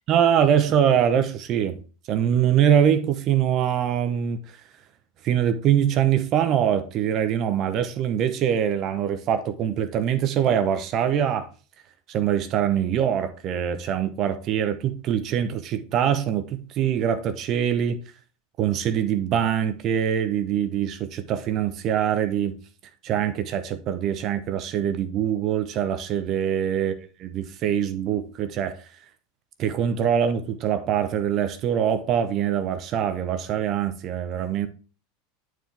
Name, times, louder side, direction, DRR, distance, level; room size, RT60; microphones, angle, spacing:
voice 1, 0.1-1.8 2.1-4.6 5.2-11.5 12.1-18.0 18.6-22.6 23.0-26.9 27.2-28.9 29.6-34.7, right 9 dB, 45° right, 0.8 m, -23 dB
9.0 x 4.7 x 3.3 m
hypercardioid pair, 85°, 0 cm